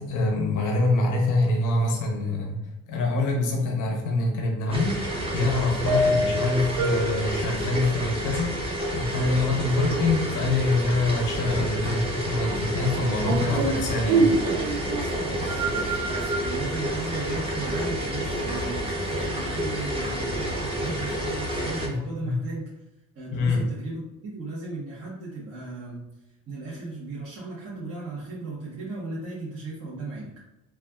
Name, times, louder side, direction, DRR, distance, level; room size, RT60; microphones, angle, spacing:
voice 1, 0.0-2.6 2.9-14.3 21.9-22.4 23.3-23.6, left 2 dB, 65° left, 0 dB, 0.9 m, -25 dB
sound 1, 4.7-21.9, equal, 15° right, 0.8 m, -30 dB
sound 2, 4.7-22.0, right 2 dB, 85° right, 0.5 m, -31 dB
voice 2, 13.2-14.4 14.8-22.7 23.1-26.1 26.5-30.4, right 3 dB, 45° right, -7 dB, 1.0 m, -36 dB
3.3 x 2.3 x 2.3 m, 0.95 s
supercardioid pair, 70°, 32 cm